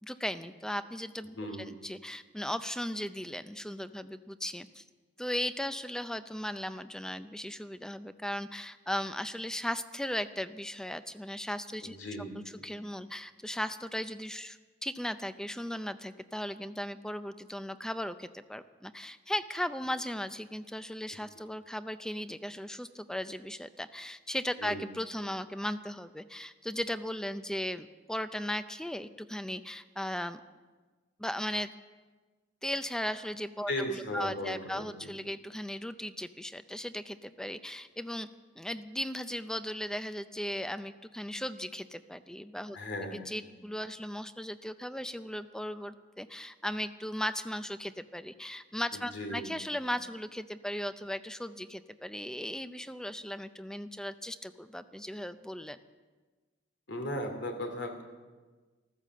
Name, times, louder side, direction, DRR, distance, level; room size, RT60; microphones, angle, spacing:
voice 1, 0.0-4.8 5.2-12.0 12.3-30.4 31.2-31.7 32.6-38.3 38.6-42.8 43.1-55.8, left 1 dB, 5° left, 12 dB, 0.5 m, -37 dB
voice 2, 1.4-1.8 11.8-12.6 24.6-24.8 33.7-35.1 42.7-43.3 48.9-49.5 56.9-58.0, left 1 dB, 80° left, 4 dB, 2.7 m, -37 dB
14.5 x 13.0 x 7.5 m, 1.3 s
head